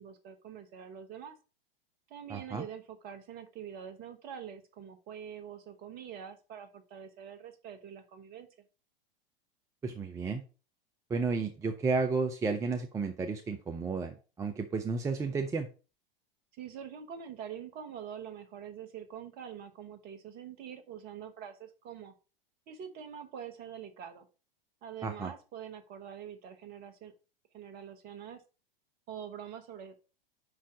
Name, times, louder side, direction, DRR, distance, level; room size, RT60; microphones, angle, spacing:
voice 1, 0.0-1.3 2.1-8.5 16.6-22.1 22.7-24.2 24.8-27.1 27.5-28.4 29.1-30.0, right 8 dB, 30° right, 8 dB, 1.2 m, -45 dB
voice 2, 2.3-2.6 9.8-10.4 11.1-15.7 25.0-25.3, right 4 dB, 10° right, 5 dB, 0.5 m, -32 dB
5.6 x 4.7 x 5.0 m, 0.33 s
figure-of-eight pair, 95°, 29 cm